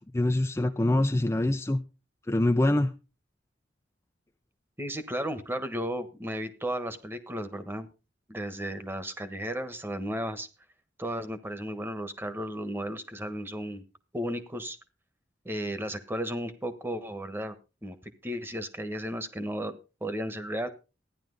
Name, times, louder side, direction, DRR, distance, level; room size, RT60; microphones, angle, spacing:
voice 1, 0.0-1.8 2.3-2.9, left 1 dB, 15° left, 5 dB, 0.5 m, -25 dB
voice 2, 4.8-7.9 8.3-10.5 11.0-13.8 14.1-14.8 15.4-17.6 17.8-20.7, equal, 10° right, 10 dB, 1.2 m, -34 dB
14.5 x 10.5 x 3.9 m, 0.31 s
head